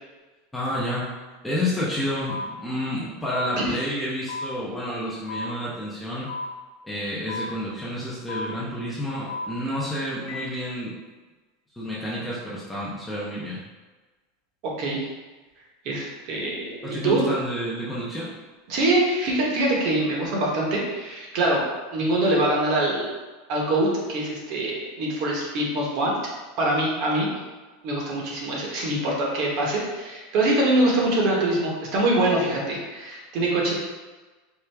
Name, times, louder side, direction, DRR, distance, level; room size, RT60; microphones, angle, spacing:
voice 1, 0.5-1.1 1.4-6.3 6.8-11.0 11.8-13.6 16.8-18.3, left 1 dB, 5° left, -7 dB, 0.5 m, -30 dB
sound 1, 2.3-2.4 3.3-3.4 4.3-4.5 5.3-5.5 6.3-6.5 7.3-7.5 8.3-8.4 9.3-9.4 10.3-10.4, left 3 dB, 85° left, 0.9 m, -32 dB
voice 2, 14.6-15.1 15.8-17.3 18.7-21.7 21.9-23.1 23.5-26.1 26.6-27.3 27.8-33.7, right 1 dB, 40° right, -2 dB, 0.9 m, -24 dB
4.5 x 2.4 x 3.3 m, 1.3 s
supercardioid pair, 175°, 0 cm